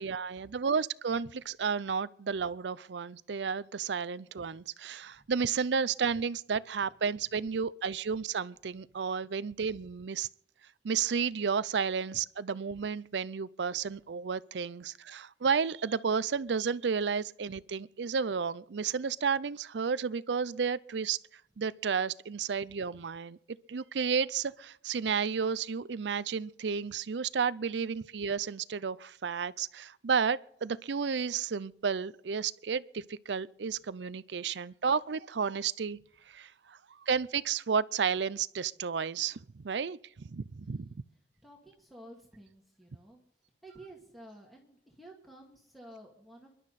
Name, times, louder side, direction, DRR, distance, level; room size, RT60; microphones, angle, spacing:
voice 1, 0.0-10.3 10.8-21.2 21.6-23.4 23.7-36.0 36.3-40.9, right 6 dB, 75° right, 0.5 m, -32 dB
voice 2, 40.5-41.0 41.4-43.2 43.6-46.5, right 1 dB, ahead, 2.2 m, -52 dB
28.0 x 11.5 x 4.2 m
head